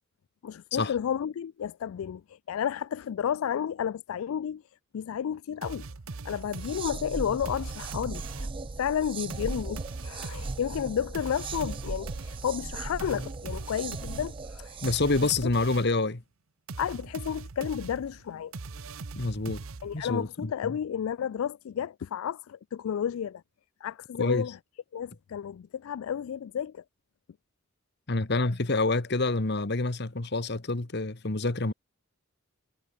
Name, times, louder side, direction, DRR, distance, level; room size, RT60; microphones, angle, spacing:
voice 1, 0.4-4.6 4.9-5.9 6.2-8.5 8.8-14.8 16.8-18.5 19.8-23.4 23.8-24.6 24.9-26.8, left 8 dB, 80° left, 0.3 m, -32 dB
sound 1, 5.6-8.7 9.3-16.0 16.7-20.2, right 3 dB, 90° right, 0.9 m, -41 dB
sound 2, 6.4-15.5, right 3 dB, 25° right, 0.4 m, -38 dB
voice 2, 14.8-16.2 19.1-19.6 19.9-20.5 24.2-24.4 28.1-31.7, left 2 dB, 55° left, 1.4 m, -27 dB
head